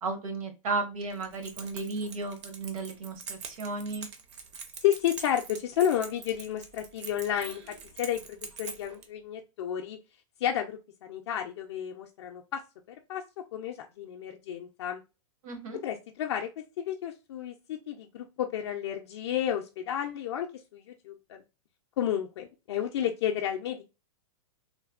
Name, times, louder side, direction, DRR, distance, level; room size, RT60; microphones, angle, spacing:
voice 1, 0.0-4.1 15.4-15.8, right 3 dB, 75° right, 4 dB, 1.1 m, -34 dB
Keys jangling, 1.1-9.1, right 5 dB, 55° right, 0.6 m, -44 dB
voice 2, 4.8-10.0 10.4-12.6 13.1-13.2 13.5-15.0 15.8-16.5 16.8-20.5 20.7-21.4 22.0-23.8, left 10 dB, 50° left, 2 dB, 0.4 m, -31 dB
3.1 x 2.0 x 2.3 m, 0.28 s
supercardioid pair, 170°, 18 cm